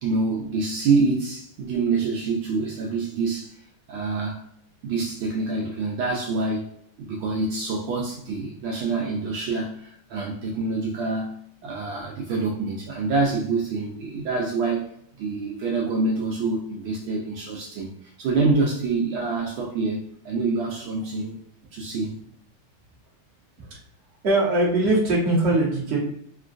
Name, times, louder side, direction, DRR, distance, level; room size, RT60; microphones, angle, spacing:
voice 1, 0.0-3.6 3.9-4.4 4.8-6.7 7.0-11.4 11.6-14.9 15.2-20.0 20.2-21.4 21.7-22.2, right 3 dB, 75° right, -1 dB, 1.3 m, -26 dB
voice 2, 24.2-26.0, right 2 dB, 40° right, -6 dB, 1.1 m, -21 dB
3.7 x 2.3 x 2.5 m, 0.68 s
omnidirectional pair, 2.4 m